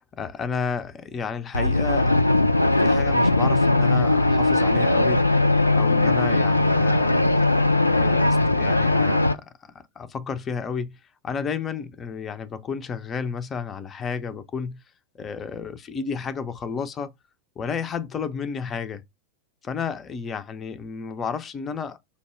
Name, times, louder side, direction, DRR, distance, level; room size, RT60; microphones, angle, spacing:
voice 1, 0.0-5.3 5.7-7.3 7.9-11.0 11.2-14.8 15.2-17.1 17.6-19.0 19.6-22.0, left 6 dB, 25° left, 0.5 m, -32 dB
sound 1, 1.5-9.3, left 2 dB, 85° left, 0.3 m, -19 dB
5.1 x 2.2 x 3.1 m
figure-of-eight pair, 90°, 0 cm